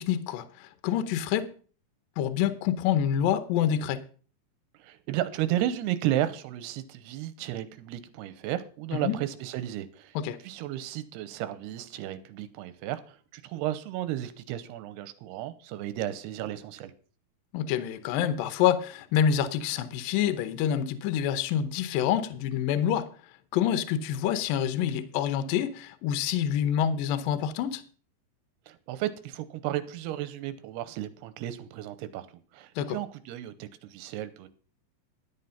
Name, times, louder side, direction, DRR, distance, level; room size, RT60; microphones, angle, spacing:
voice 1, 0.0-1.5 2.2-4.0 9.0-9.2 10.2-10.4 17.5-23.1 23.5-27.8 32.8-33.0, left 9 dB, 75° left, 2.3 m, -27 dB
voice 2, 4.8-10.2 10.4-16.9 28.7-32.3 32.5-34.5, right 13 dB, 85° right, 2.8 m, -33 dB
11.5 x 7.8 x 5.6 m
omnidirectional pair, 4.7 m